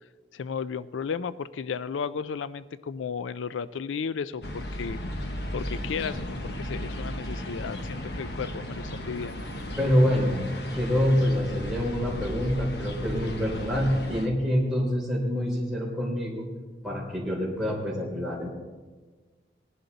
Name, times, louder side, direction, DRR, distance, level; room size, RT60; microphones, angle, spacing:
voice 1, 0.3-5.0 5.5-9.4, left 6 dB, 90° left, 16 dB, 0.4 m, -34 dB
sound 1, 4.4-14.3, equal, 60° left, 1.2 m, -35 dB
voice 2, 9.8-10.5 10.7-16.5 16.8-18.5, equal, ahead, -4 dB, 3.4 m, -26 dB
19.5 x 11.0 x 4.0 m, 1.4 s
head